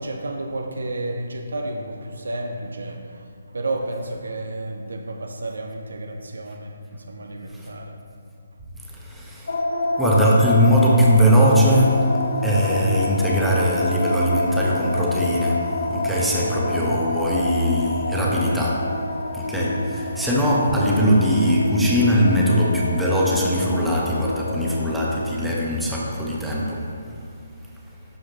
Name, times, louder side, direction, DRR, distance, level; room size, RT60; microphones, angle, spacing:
voice 1, 0.0-8.0 19.6-19.8, right 2 dB, 70° right, 4 dB, 0.6 m, -31 dB
voice 2, 8.9-9.6 10.0-19.0 19.3-26.9, equal, 5° right, -6 dB, 1.1 m, -20 dB
sound 1, 9.5-25.4, left 2 dB, 65° left, 0.6 m, -27 dB
12.0 x 4.9 x 3.1 m, 2.3 s
figure-of-eight pair, 140°, 0 cm